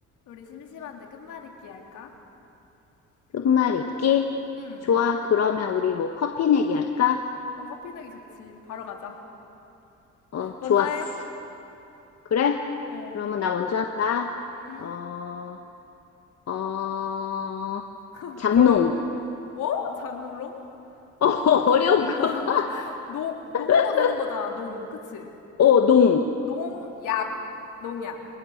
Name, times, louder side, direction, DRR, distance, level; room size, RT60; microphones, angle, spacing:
voice 1, 0.3-2.1 4.6-4.9 7.6-9.1 10.4-11.1 12.9-13.2 14.6-14.9 18.1-18.7 19.5-20.6 22.1-25.3 26.5-27.3 27.8-28.2, left 7 dB, 80° left, 1 dB, 3.7 m, -34 dB
voice 2, 3.3-4.3 4.8-7.2 10.3-10.9 12.3-12.6 13.1-14.3 14.8-15.6 16.5-17.8 18.4-18.9 21.2-22.7 23.7-24.1 25.6-26.2, left 7 dB, 60° left, 4 dB, 1.5 m, -22 dB
29.0 x 26.0 x 6.7 m, 2.8 s
cardioid pair, 90°, 30 cm